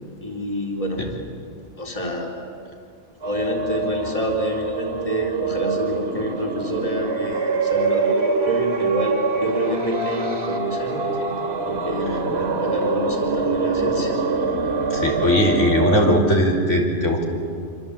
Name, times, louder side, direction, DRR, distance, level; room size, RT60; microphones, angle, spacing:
voice 1, 0.2-1.0 1.8-2.3 3.2-11.4 11.7-14.1, equal, 25° left, 0 dB, 3.8 m, -27 dB
sound 1, 3.2-16.2, right 4 dB, 55° right, 2.8 m, -24 dB
voice 2, 14.9-17.2, left 1 dB, 70° left, -1 dB, 4.3 m, -19 dB
26.5 x 25.5 x 8.7 m, 2.4 s
omnidirectional pair, 1.3 m